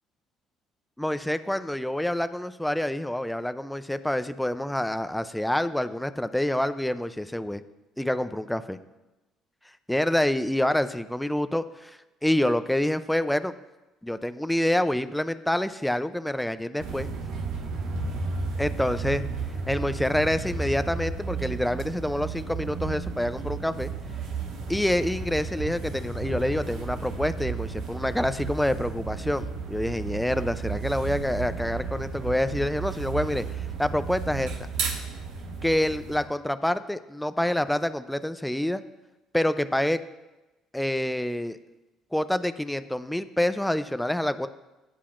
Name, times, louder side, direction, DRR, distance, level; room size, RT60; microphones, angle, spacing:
voice 1, 1.0-7.6 8.0-8.8 9.9-13.5 14.0-17.1 18.6-19.2 19.7-23.9 24.7-34.5 35.6-38.8 39.3-40.0 40.7-41.6 42.1-44.5, left 1 dB, 5° left, 11 dB, 0.5 m, -27 dB
sound 1, 16.8-36.2, right 4 dB, 80° right, 1.6 m, -33 dB
17.0 x 8.3 x 2.5 m, 1.0 s
supercardioid pair, 85°, 0 cm